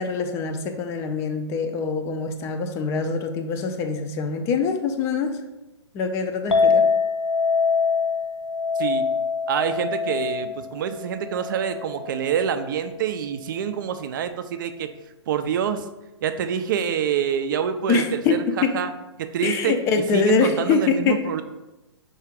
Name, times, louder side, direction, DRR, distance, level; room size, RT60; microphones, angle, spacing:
voice 1, 0.0-5.4 5.9-6.9 17.9-18.8 19.4-21.2, left 5 dB, 20° left, 6 dB, 0.4 m, -24 dB
Chink clink, 6.5-12.8, left 5 dB, 80° left, 0.6 m, -24 dB
voice 2, 8.8-9.1 9.5-14.9 15.3-15.9 16.2-18.9 19.2-19.7 20.1-21.4, right 8 dB, 45° right, 9 dB, 0.4 m, -26 dB
4.8 x 2.4 x 4.6 m, 1.0 s
figure-of-eight pair, 115°, 15 cm